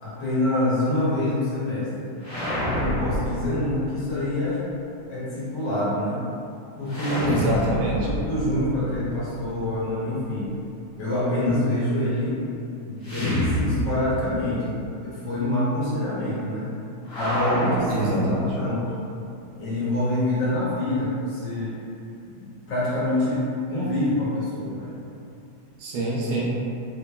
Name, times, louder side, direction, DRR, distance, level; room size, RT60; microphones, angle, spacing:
voice 1, 0.0-2.1 2.7-4.6 5.1-6.2 6.8-7.4 8.0-10.5 11.0-12.4 12.8-14.8 15.0-16.7 17.1-18.8 19.5-21.7 22.7-24.9, left 1 dB, 65° left, -9 dB, 1.4 m, -26 dB
sound 1, 2.2-4.2 6.9-9.9 13.0-14.4 14.7-14.8 17.1-18.8, equal, 40° left, 1.2 m, -28 dB
voice 2, 7.2-8.1 17.8-18.5 25.8-26.4, right 1 dB, 75° right, -4 dB, 1.4 m, -25 dB
3.6 x 3.2 x 2.2 m, 2.6 s
omnidirectional pair, 2.3 m